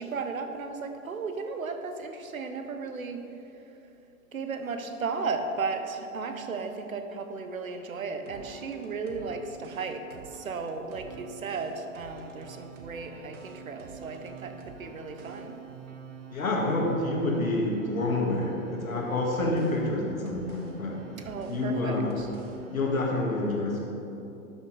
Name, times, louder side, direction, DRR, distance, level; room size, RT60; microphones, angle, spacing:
voice 1, 0.0-3.2 4.3-10.0 10.3-15.6 21.2-22.3, right 4 dB, 75° right, 7 dB, 0.9 m, -35 dB
sound 1, 8.3-23.0, right 6 dB, 60° right, 1.2 m, -47 dB
voice 2, 16.3-21.0 21.5-22.1 22.7-23.8, left 2 dB, 80° left, -2 dB, 1.9 m, -28 dB
12.0 x 6.0 x 4.0 m, 2.9 s
figure-of-eight pair, 95°, 41 cm